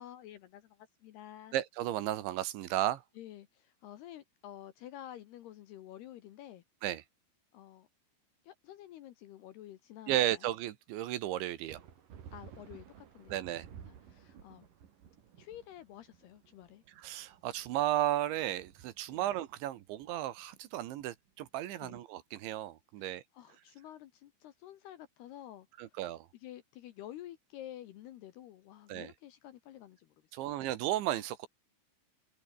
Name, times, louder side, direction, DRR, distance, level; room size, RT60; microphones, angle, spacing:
voice 1, 0.0-1.5 3.2-6.6 7.5-7.9 8.4-10.5 12.3-14.7 15.4-16.8 19.1-19.3 21.8-22.1 23.0-26.0 26.3-30.6, left 12 dB, 70° left, 2.6 m, -50 dB
voice 2, 1.5-3.0 6.8-7.0 10.1-11.8 13.3-13.7 17.0-23.2 25.8-26.3 28.9-29.1 30.3-31.5, right 13 dB, 70° right, 3.4 m, -34 dB
sound 1, 11.7-21.6, right 8 dB, 50° right, 3.5 m, -55 dB
omnidirectional pair, 5.8 m